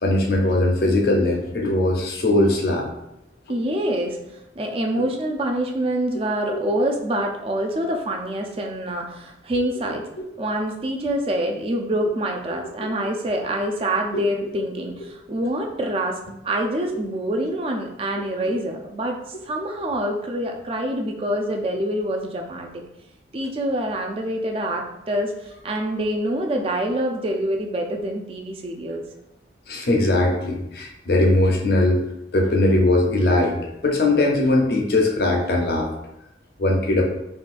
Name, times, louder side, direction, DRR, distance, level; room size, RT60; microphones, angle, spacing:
voice 1, 0.0-2.9 6.2-6.3 6.5-6.7 9.9-10.2 14.1-14.2 16.9-17.0 29.7-32.0 32.3-33.6 33.8-35.9 36.6-37.0, left 2 dB, 55° left, 1 dB, 0.6 m, -20 dB
voice 2, 3.5-4.2 4.6-10.0 10.4-16.2 16.4-22.8 23.3-29.0, right 1 dB, 30° right, 2 dB, 0.4 m, -26 dB
3.7 x 2.3 x 2.5 m, 0.86 s
head